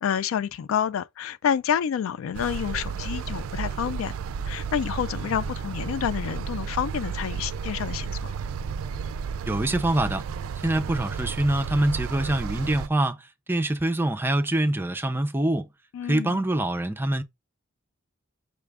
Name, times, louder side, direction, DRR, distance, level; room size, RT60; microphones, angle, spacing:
voice 1, 0.0-4.1 4.5-8.4 15.9-16.4, left 8 dB, 75° left, 0.3 m, -28 dB
sound 1, 2.3-12.9, right 6 dB, 85° right, 0.3 m, -32 dB
voice 2, 9.5-10.2 10.6-15.7 16.1-17.2, right 1 dB, 10° right, 0.4 m, -25 dB
5.7 x 2.4 x 3.3 m
head